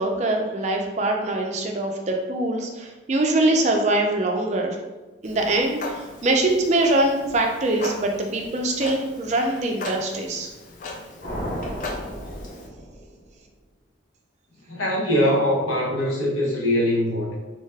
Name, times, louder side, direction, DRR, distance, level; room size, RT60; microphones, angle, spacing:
voice 1, 0.0-4.8 5.2-10.5, right 2 dB, 35° right, 2 dB, 0.4 m, -23 dB
Clock, 5.2-12.7, left 3 dB, 40° left, 0.3 m, -38 dB
sound 1, 11.2-13.4, equal, 70° left, 1.3 m, -33 dB
voice 2, 14.7-17.3, left 1 dB, 85° left, -2 dB, 0.8 m, -22 dB
2.7 x 2.2 x 3.2 m, 1.1 s
head